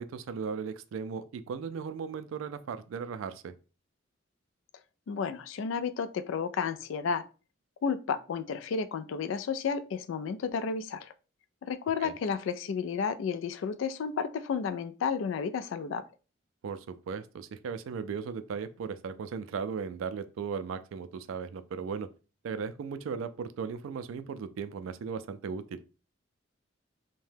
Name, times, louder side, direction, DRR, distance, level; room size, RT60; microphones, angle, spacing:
voice 1, 0.0-3.5 12.0-12.1 16.6-22.1 22.4-25.8, right 6 dB, 85° right, 0.3 m, -37 dB
voice 2, 5.1-7.2 7.8-11.1 11.6-16.0, left 6 dB, 70° left, 0.3 m, -32 dB
2.7 x 2.1 x 3.2 m
head